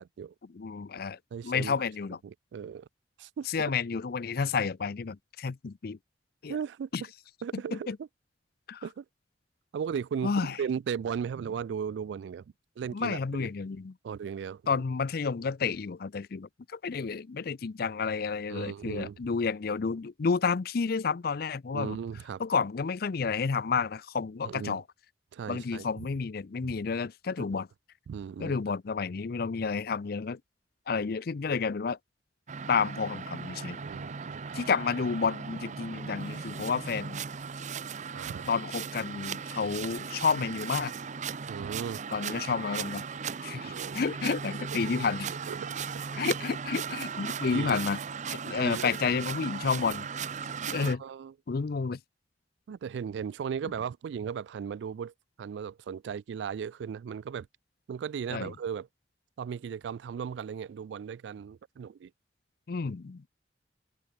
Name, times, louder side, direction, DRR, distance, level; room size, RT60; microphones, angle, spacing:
voice 1, 0.0-0.3 1.3-1.7 2.2-2.9 3.2-3.5 6.5-6.9 7.4-8.1 8.8-9.0 9.7-12.4 12.8-13.5 14.0-14.8 18.5-19.2 21.7-22.4 24.4-24.8 25.3-26.1 26.6-26.7 28.1-28.6 33.8-34.6 38.1-38.5 41.5-42.0 43.6-44.0 45.5-45.7 47.5-47.8 48.6-48.9 50.8-51.3 52.7-57.5 57.9-58.9 59.4-62.1, right 7 dB, 75° right, 0.3 m, -36 dB
voice 2, 0.5-2.2 3.5-6.0 6.4-6.6 6.9-7.0 7.5-8.0 8.7-8.8 10.2-10.6 12.9-13.9 14.7-22.0 22.4-24.8 25.5-27.7 28.4-30.4 30.9-32.0 32.7-33.8 34.5-37.2 38.5-40.9 42.1-43.0 43.4-45.3 46.2-48.0 48.4-50.1 50.7-51.0 51.5-52.0 58.3-58.5 62.7-63.2, left 5 dB, 55° left, 0.5 m, -30 dB
sound 1, 32.5-51.0, right 6 dB, 40° right, 0.6 m, -37 dB
open air
head